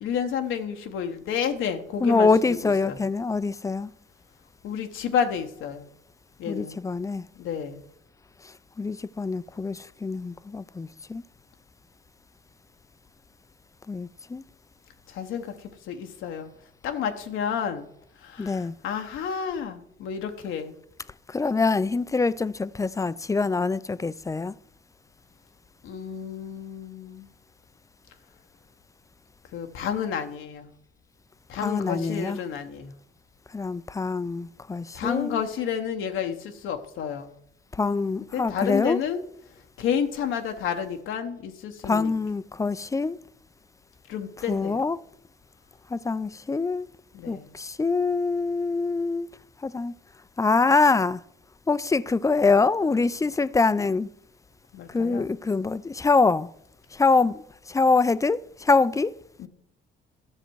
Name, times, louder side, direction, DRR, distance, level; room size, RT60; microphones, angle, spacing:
voice 1, 0.0-3.0 4.6-5.9 6.4-6.8 7.4-7.8 15.1-16.5 16.8-17.9 18.2-20.7 25.8-27.3 29.5-30.7 31.5-32.9 34.9-37.3 38.3-39.2 39.8-42.1 44.1-44.8 47.1-47.5 54.7-55.3 59.4-59.5, left 8 dB, 85° left, 1.0 m, -30 dB
voice 2, 2.0-3.9 6.4-7.2 8.4-11.2 13.9-14.4 18.4-18.8 21.3-24.5 31.6-32.4 33.5-35.4 37.7-39.0 41.8-43.2 44.5-45.0 45.9-46.9 47.3-49.3 49.6-49.9 50.4-51.2 51.7-54.1 54.9-56.5 56.9-59.1, left 4 dB, 15° left, 0.4 m, -24 dB
12.5 x 6.7 x 4.6 m
cardioid pair, 90°, 20 cm